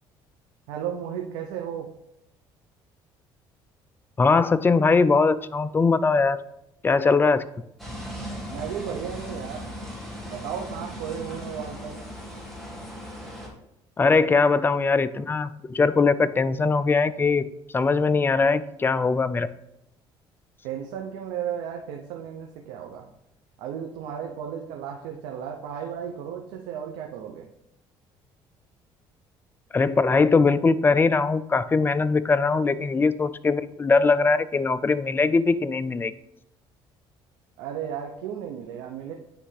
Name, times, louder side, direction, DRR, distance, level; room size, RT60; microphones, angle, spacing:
voice 1, 0.7-1.9 8.5-9.7 10.3-12.0 14.2-14.3 20.6-23.1 23.6-27.5 37.6-39.1, right 8 dB, 90° right, 2 dB, 0.6 m, -34 dB
voice 2, 4.2-6.4 6.8-7.4 14.0-17.5 17.7-19.5 29.7-36.1, left 4 dB, 20° left, 14 dB, 0.3 m, -21 dB
sound 1, 7.8-13.5, equal, ahead, 2.0 m, -37 dB
9.8 x 3.3 x 3.2 m, 0.80 s
cardioid pair, 95°, 10 cm